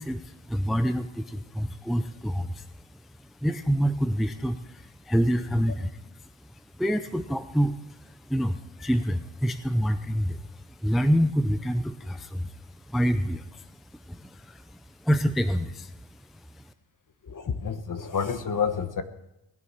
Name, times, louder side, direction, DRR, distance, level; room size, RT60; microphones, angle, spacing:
voice 1, 0.0-16.7, equal, ahead, 10 dB, 0.5 m, -28 dB
voice 2, 17.2-19.0, left 6 dB, 40° left, 9 dB, 1.3 m, -29 dB
18.5 x 6.9 x 9.7 m, 0.89 s
wide cardioid pair, 130°, 47 cm